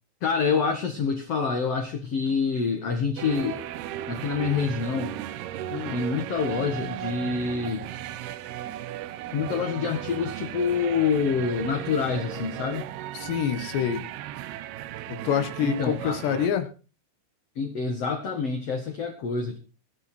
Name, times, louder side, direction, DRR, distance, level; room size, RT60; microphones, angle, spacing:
voice 1, 0.2-3.6 4.1-5.2 5.9-7.9 9.3-12.9 15.6-16.2 17.6-19.6, left 5 dB, 50° left, 4 dB, 2.2 m, -27 dB
sound 1, 3.2-16.5, right 12 dB, 75° right, 2.7 m, -36 dB
voice 2, 5.7-6.0 13.1-14.0 15.1-16.7, left 8 dB, 85° left, 9 dB, 3.9 m, -27 dB
23.5 x 8.7 x 4.6 m, 0.34 s
omnidirectional pair, 4.8 m